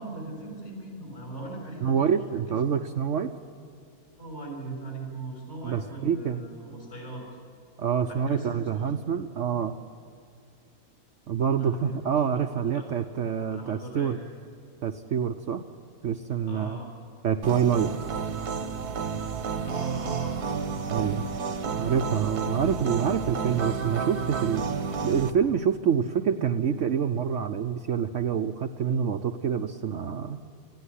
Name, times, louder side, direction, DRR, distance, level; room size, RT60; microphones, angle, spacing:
voice 1, 0.0-2.0 2.5-2.8 4.2-7.2 8.1-8.9 11.6-12.0 12.7-12.9 13.5-14.2 16.5-16.9 19.6-20.6, right 2 dB, 45° left, -1 dB, 6.7 m, -39 dB
voice 2, 1.8-3.3 5.6-6.4 7.8-9.8 11.3-14.2 14.8-15.6 16.0-16.8 17.2-17.9 20.9-21.2 21.8-24.7 25.0-30.4, right 7 dB, 60° right, 7 dB, 0.9 m, -26 dB
sound 1, 17.4-25.3, right 5 dB, 85° right, 1.6 m, -31 dB
20.0 x 14.0 x 10.0 m, 2.5 s
omnidirectional pair, 1.6 m